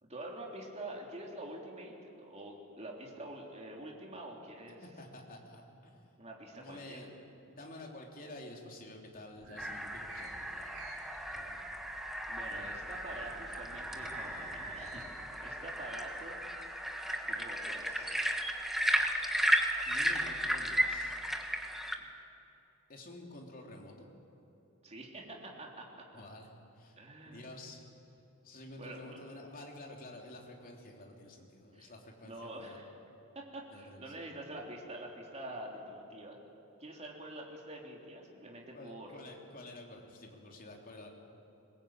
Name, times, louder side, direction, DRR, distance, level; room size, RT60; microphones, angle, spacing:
voice 1, 0.0-1.9 2.2-4.8 6.2-7.1 12.3-15.0 15.4-16.4 17.2-18.2 24.8-26.0 27.0-27.5 28.8-29.2 31.7-31.9 32.2-32.9 33.3-36.4 36.8-39.1, right 1 dB, 30° right, -1 dB, 3.3 m, -46 dB
voice 2, 4.8-6.1 6.6-7.1 7.5-10.9 11.3-11.6 19.8-21.1 22.9-24.1 26.1-26.5 26.7-27.0 27.2-27.8 28.4-32.8 33.7-34.0 38.7-41.1, left 1 dB, 40° left, 1 dB, 3.3 m, -50 dB
sound 1, 9.4-15.1, right 3 dB, 65° right, 4.4 m, -50 dB
sound 2, 9.6-22.0, equal, ahead, 1.3 m, -34 dB
22.0 x 20.5 x 8.9 m, 2.9 s
head